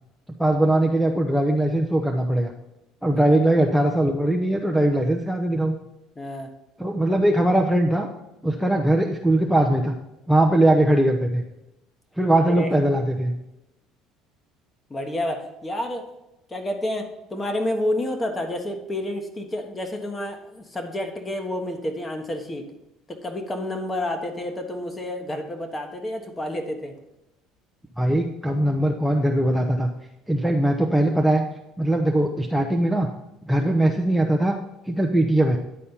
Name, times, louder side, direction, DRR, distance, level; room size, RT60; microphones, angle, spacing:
voice 1, 0.4-2.5 3.0-5.8 6.8-8.1 8.4-10.0 10.3-11.4 12.2-13.3 28.0-29.9 30.3-31.4 31.8-33.1 33.4-34.6 34.9-35.6, right 1 dB, ahead, 3 dB, 0.7 m, -20 dB
voice 2, 6.1-6.5 12.4-12.7 14.9-16.1 16.5-22.7 23.1-27.0, left 1 dB, 20° left, 5 dB, 1.3 m, -29 dB
9.9 x 4.3 x 5.5 m, 0.92 s
supercardioid pair, 90°, 0 cm